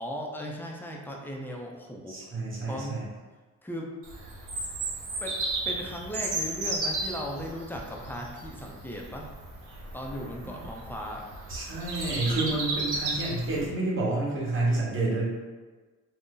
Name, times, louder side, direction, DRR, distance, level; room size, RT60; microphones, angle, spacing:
voice 1, 0.0-2.2 2.7-3.0 3.6-3.9 5.2-5.4 5.6-9.3 9.9-11.2, equal, 5° left, -1 dB, 0.5 m, -37 dB
voice 2, 2.1-3.1 10.4-10.6 11.5-15.3, right 2 dB, 45° right, -5 dB, 1.0 m, -29 dB
Bird vocalization bird call bird song, 4.0-13.7, right 2 dB, 80° right, 0.8 m, -34 dB
2.6 x 2.1 x 3.7 m, 1.3 s
cardioid pair, 90°, 30 cm